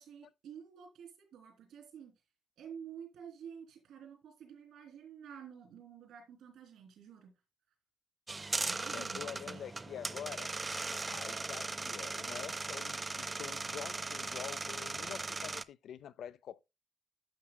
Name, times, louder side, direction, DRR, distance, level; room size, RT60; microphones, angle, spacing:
voice 1, 0.0-2.1 2.6-7.3 8.6-9.7, right 7 dB, 85° right, 3.0 m, -50 dB
sound 1, 8.3-15.6, right 3 dB, 20° right, 0.4 m, -38 dB
voice 2, 8.9-10.5 11.1-16.6, left 9 dB, 70° left, 0.4 m, -46 dB
11.0 x 7.4 x 2.2 m
cardioid pair, 150°, 0 cm